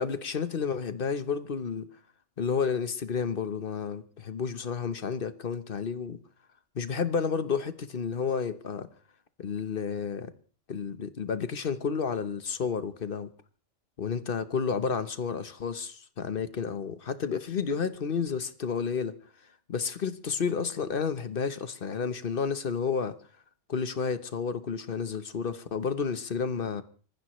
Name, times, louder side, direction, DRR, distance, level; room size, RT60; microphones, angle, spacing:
voice 1, 0.0-1.9 2.4-6.2 6.7-8.9 9.4-10.3 10.7-13.3 14.0-19.1 19.7-23.1 23.7-26.8, left 6 dB, 50° left, 1.1 m, -31 dB
26.5 x 15.0 x 3.1 m
omnidirectional pair, 1.3 m